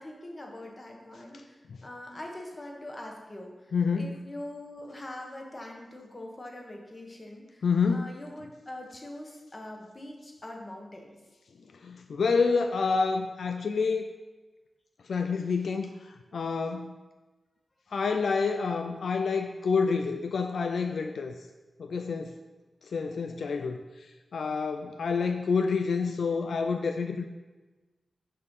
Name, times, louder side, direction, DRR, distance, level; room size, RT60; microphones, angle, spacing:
voice 1, 0.0-11.2, left 1 dB, 25° left, 1 dB, 1.4 m, -43 dB
voice 2, 3.7-4.2 7.6-8.1 11.8-14.1 15.1-15.9 16.3-16.9 17.9-21.3 21.8-22.4 22.8-23.8 24.3-27.3, left 5 dB, 80° left, 6 dB, 0.4 m, -28 dB
6.7 x 5.3 x 5.4 m, 1.2 s
wide cardioid pair, 115°, 0 cm